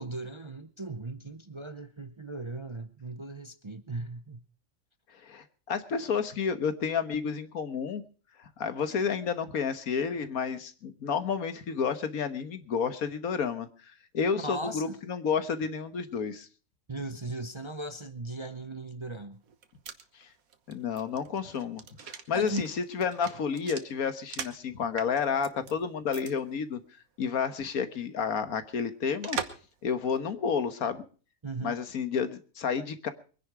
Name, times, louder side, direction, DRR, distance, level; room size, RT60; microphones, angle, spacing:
voice 1, 0.0-4.4 14.4-15.0 16.9-19.4 22.3-22.7 31.4-31.8, right 2 dB, 30° right, 0.5 m, -37 dB
voice 2, 5.1-8.0 8.4-16.5 20.2-20.3 20.7-26.8 27.2-29.4 29.8-31.0 31.6-33.1, left 6 dB, 85° left, 1.7 m, -31 dB
sound 1, 19.4-24.7 25.0-25.7 26.1-26.3 26.6-26.7 29.2-29.7 30.1-30.2, right 6 dB, 80° right, 1.6 m, -40 dB
22.5 x 10.5 x 4.8 m
omnidirectional pair, 1.5 m